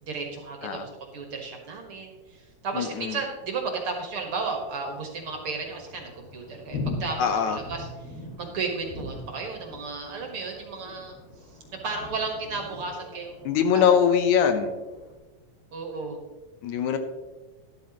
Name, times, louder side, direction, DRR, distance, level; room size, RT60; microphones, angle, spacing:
voice 1, 0.0-11.2 11.8-13.8 15.7-16.2, right 4 dB, 50° right, 2 dB, 2.1 m, -34 dB
voice 2, 2.7-3.2 7.2-7.6 13.5-14.7 16.6-17.0, left 7 dB, 75° left, 7 dB, 2.2 m, -22 dB
Thunder, 4.2-15.1, left 2 dB, 55° left, 2.8 m, -41 dB
12.5 x 12.0 x 3.0 m, 1.2 s
omnidirectional pair, 3.5 m